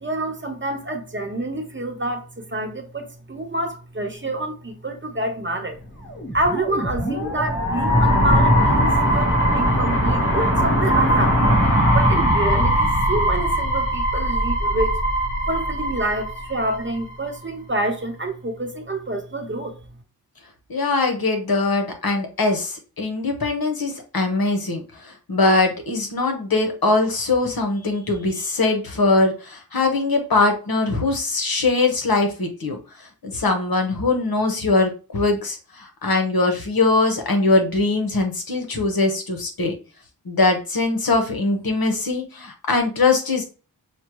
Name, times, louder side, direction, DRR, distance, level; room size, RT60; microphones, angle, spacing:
voice 1, 0.0-5.8 6.3-11.5 11.9-14.9 15.5-19.7, right 2 dB, 30° right, 0.9 m, -27 dB
sound 1, 6.1-17.0, equal, 35° left, 1.4 m, -20 dB
voice 2, 20.7-32.8 33.2-39.7 40.2-43.4, left 3 dB, 70° left, 1.1 m, -21 dB
6.3 x 2.2 x 3.0 m
wide cardioid pair, 70°, 37 cm